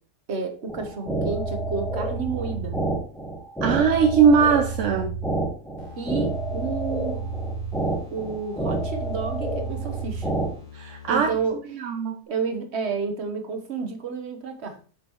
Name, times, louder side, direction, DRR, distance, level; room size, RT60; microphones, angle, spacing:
voice 1, 0.3-2.7 6.0-7.3 8.1-10.3 11.1-11.9 12.3-14.8, right 5 dB, 45° right, 1.3 m, -30 dB
sound 1, 0.7-10.5, right 2 dB, ahead, 1.1 m, -28 dB
voice 2, 3.6-5.2 10.7-11.3 11.7-12.2, right 6 dB, 60° right, 0.8 m, -20 dB
sound 2, 5.8-11.7, left 9 dB, 25° left, 2.0 m, -45 dB
8.1 x 5.9 x 3.1 m
omnidirectional pair, 1.7 m